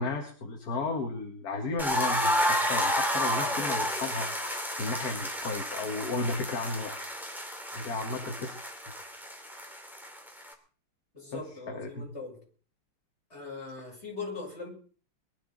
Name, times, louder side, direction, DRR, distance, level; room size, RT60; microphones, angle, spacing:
voice 1, 0.0-4.3 4.8-7.1 7.7-8.5 11.3-11.4 11.7-12.1, left 3 dB, 45° left, 2.0 m, -33 dB
sound 1, 1.8-10.5, equal, ahead, 2.3 m, -31 dB
voice 2, 11.1-12.4 13.3-14.7, left 3 dB, 30° left, 7.6 m, -40 dB
22.5 x 12.0 x 4.0 m
omnidirectional pair, 2.4 m